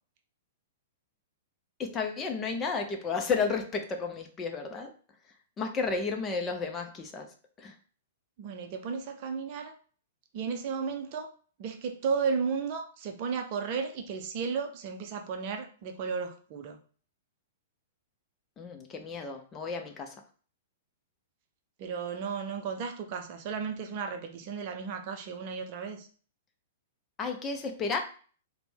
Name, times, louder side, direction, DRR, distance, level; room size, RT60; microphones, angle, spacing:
voice 1, 1.8-4.9 5.6-7.8 18.6-20.2 27.2-28.0, left 4 dB, 20° left, 4 dB, 0.6 m, -32 dB
voice 2, 8.4-9.7 10.3-11.3 11.6-16.8 21.8-26.1, right 5 dB, 40° right, 5 dB, 0.5 m, -34 dB
4.2 x 2.2 x 3.4 m, 0.41 s
figure-of-eight pair, 105°, 0 cm